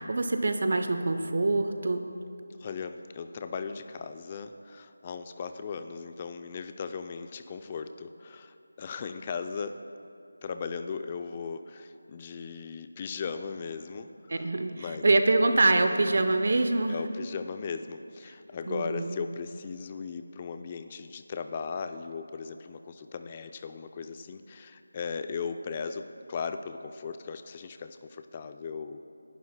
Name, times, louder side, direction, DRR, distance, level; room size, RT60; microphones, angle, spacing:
voice 1, 0.0-2.0 14.3-17.0 18.7-19.2, right 2 dB, 55° right, 7 dB, 0.7 m, -25 dB
voice 2, 2.6-9.8 10.4-14.5 14.7-15.1 15.7-16.2 16.9-29.0, left 5 dB, 25° left, 9 dB, 0.4 m, -37 dB
27.0 x 11.0 x 2.2 m, 2.6 s
figure-of-eight pair, 165°, 0 cm